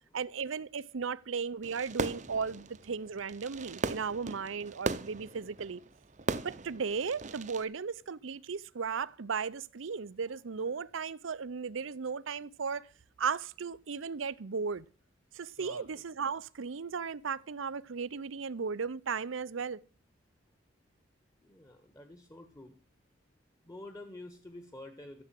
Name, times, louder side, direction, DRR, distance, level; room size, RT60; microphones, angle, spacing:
voice 1, 0.1-5.8 6.4-12.9 13.2-14.8 15.3-19.8, right 5 dB, 80° right, 0.6 m, -36 dB
Fireworks, 1.6-7.6, right 3 dB, 35° right, 0.7 m, -38 dB
voice 2, 15.6-16.0 21.4-22.7 23.6-25.2, left 1 dB, 20° left, 1.5 m, -49 dB
15.0 x 7.7 x 7.7 m
head